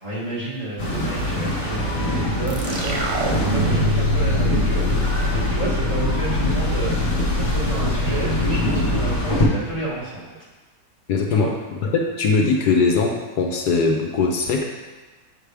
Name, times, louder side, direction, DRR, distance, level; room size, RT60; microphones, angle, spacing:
voice 1, 0.0-3.2 3.5-7.1 7.4-10.2 11.3-11.5, right 2 dB, 20° right, -8 dB, 1.9 m, -31 dB
sound 1, 0.8-9.4, equal, 50° left, 1.9 m, -24 dB
sound 2, 2.5-9.7, left 2 dB, 50° right, 0.8 m, -25 dB
voice 2, 11.1-11.5 11.8-14.6, left 4 dB, 75° left, 1 dB, 1.3 m, -20 dB
7.4 x 6.4 x 3.4 m, 1.3 s
omnidirectional pair, 1.8 m